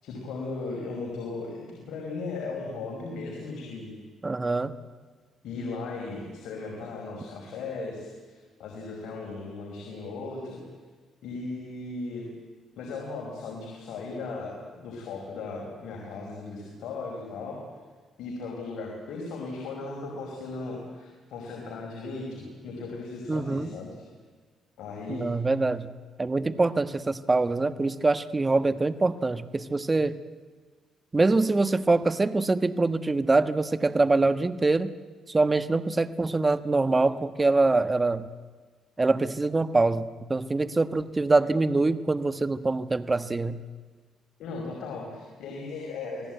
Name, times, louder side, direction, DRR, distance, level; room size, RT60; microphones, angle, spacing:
voice 1, 0.0-4.0 5.4-10.6 11.2-12.3 12.8-17.6 18.2-24.1 24.8-25.3 44.4-46.3, left 3 dB, 80° left, 0 dB, 5.1 m, -37 dB
voice 2, 4.2-4.7 23.3-23.7 25.1-25.9 26.2-30.2 31.1-34.9 35.3-38.3 39.0-43.6, right 3 dB, 20° right, 12 dB, 1.3 m, -24 dB
27.5 x 18.0 x 9.2 m, 1.5 s
cardioid pair, 90°, 0 cm